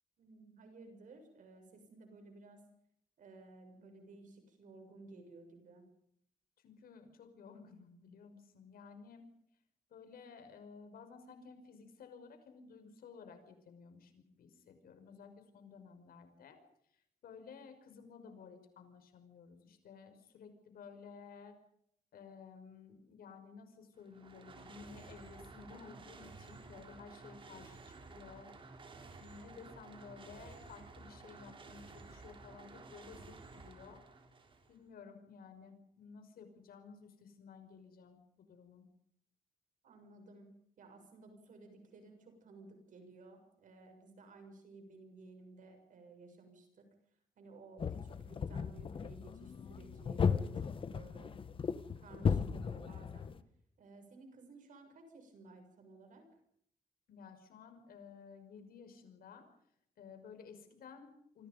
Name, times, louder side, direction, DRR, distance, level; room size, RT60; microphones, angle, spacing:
voice 1, 0.2-2.6 3.2-5.9 39.8-40.5 40.8-46.9 47.4-51.4 52.0-53.4 53.8-56.3, right 3 dB, 60° right, 6 dB, 6.9 m, -56 dB
voice 2, 6.6-9.3 9.9-16.6 16.9-21.5 22.1-28.5 29.2-34.0 34.7-38.9 57.1-59.5 60.0-61.5, left 5 dB, 85° left, 7 dB, 5.8 m, -54 dB
sound 1, 23.9-34.8, right 3 dB, 35° right, 3.8 m, -53 dB
sound 2, 47.8-53.4, left 6 dB, 35° left, 1.2 m, -36 dB
28.5 x 24.5 x 5.4 m, 0.70 s
wide cardioid pair, 180°, 15 cm